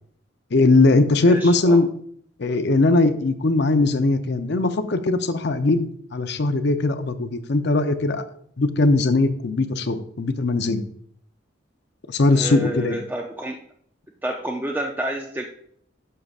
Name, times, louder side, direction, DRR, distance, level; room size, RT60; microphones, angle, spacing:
voice 1, 0.5-1.9 2.4-8.2 8.6-10.8 12.1-13.0, left 2 dB, 60° left, 10 dB, 0.6 m, -20 dB
voice 2, 1.3-1.8 12.3-13.6 14.2-15.5, right 1 dB, 10° right, 1 dB, 0.5 m, -29 dB
11.0 x 6.6 x 2.4 m, 0.66 s
head